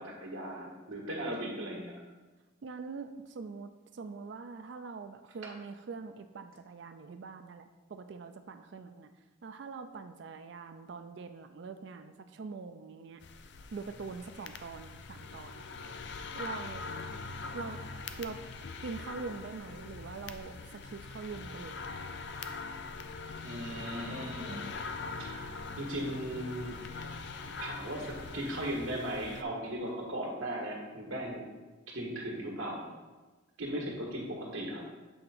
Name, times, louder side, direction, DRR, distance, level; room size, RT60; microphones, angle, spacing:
voice 1, 0.0-1.9 23.4-24.7 25.2-25.5 25.8-26.8 27.6-31.4 31.9-32.9 33.6-34.8, right 1 dB, 85° right, -2 dB, 1.6 m, -37 dB
voice 2, 2.6-9.1 9.4-13.2 13.7-15.6 16.3-16.9 17.5-17.8 18.2-18.4 18.8-21.8 33.7-33.8, right 4 dB, 60° right, 8 dB, 0.4 m, -43 dB
sound 1, 13.2-29.4, left 4 dB, 55° left, 0.4 m, -42 dB
7.8 x 3.5 x 4.9 m, 1.2 s
head